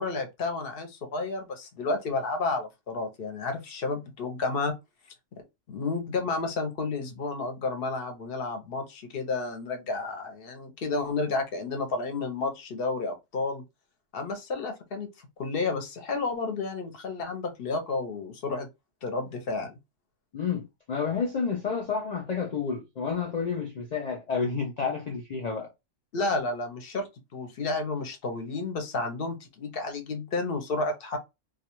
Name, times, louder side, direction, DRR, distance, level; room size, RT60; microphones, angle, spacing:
voice 1, 0.0-4.7 5.7-13.6 14.1-15.1 15.4-18.7 19.0-19.7 26.1-31.2, left 3 dB, 55° left, 0.8 m, -31 dB
voice 2, 20.3-25.7, left 5 dB, 85° left, 0.3 m, -30 dB
2.3 x 2.3 x 2.9 m
omnidirectional pair, 1.3 m